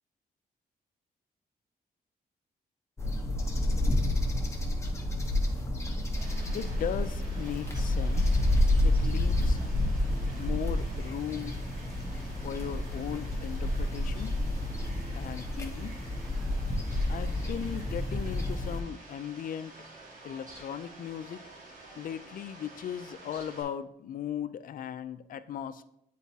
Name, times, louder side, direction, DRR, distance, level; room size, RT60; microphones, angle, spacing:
sound 1, 3.0-18.8, left 1 dB, 15° left, 0.9 m, -29 dB
Fowl, 6.1-23.6, right 2 dB, 55° right, 1.8 m, -50 dB
voice 1, 6.5-8.4 8.8-9.6 10.4-11.6 12.4-14.3 15.1-16.0 17.1-19.7 20.2-21.4 22.0-25.8, left 9 dB, 60° left, 13 dB, 0.4 m, -37 dB
9.1 x 4.1 x 2.8 m, 0.78 s
wide cardioid pair, 125°, 16 cm